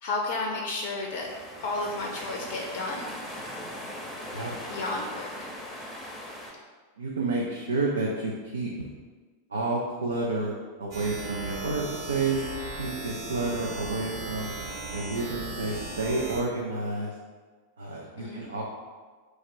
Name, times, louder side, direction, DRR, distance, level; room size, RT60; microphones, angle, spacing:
voice 1, 0.0-1.3 1.6-3.1 4.7-5.5 18.2-18.5, left 2 dB, 50° left, 0 dB, 0.5 m, -32 dB
sound 1, 1.1-6.5, equal, 5° left, 0.7 m, -39 dB
voice 2, 7.0-8.7 9.5-12.4 12.7-14.5 14.9-17.1 17.8-18.6, right 3 dB, 75° right, -3 dB, 0.4 m, -30 dB
sound 2, 10.9-16.4, right 2 dB, 50° right, 0.9 m, -37 dB
3.1 x 2.4 x 4.4 m, 1.4 s
figure-of-eight pair, 90°, 0 cm